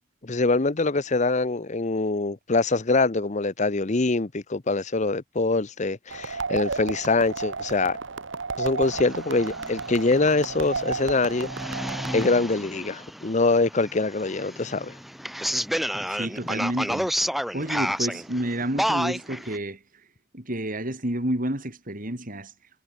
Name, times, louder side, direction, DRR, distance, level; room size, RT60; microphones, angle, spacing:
voice 1, 0.2-8.0 8.6-11.5 12.1-14.9, left 3 dB, 40° left, 0.9 m, -24 dB
sound 1, 6.1-12.3, right 4 dB, 85° right, 1.4 m, -33 dB
sound 2, 8.9-19.6, equal, ahead, 5.8 m, -31 dB
voice 2, 16.1-17.1 17.5-19.8 20.3-22.5, right 1 dB, 45° right, 4.5 m, -30 dB
head